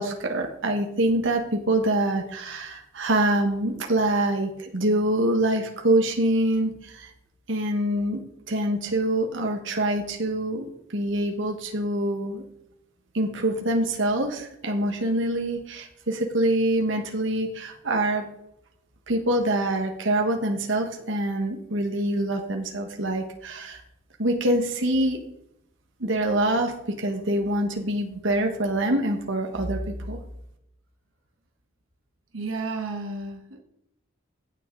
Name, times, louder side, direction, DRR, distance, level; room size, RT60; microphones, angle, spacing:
voice 1, 0.0-7.1 7.5-8.2 8.5-12.4 13.1-18.2 19.1-23.8 24.2-25.2 26.0-29.8 30.1-30.2, right 1 dB, 70° right, 3 dB, 1.5 m, -25 dB
voice 2, 32.3-33.6, right 3 dB, 90° right, 3 dB, 1.3 m, -32 dB
16.0 x 5.8 x 3.8 m, 0.78 s
head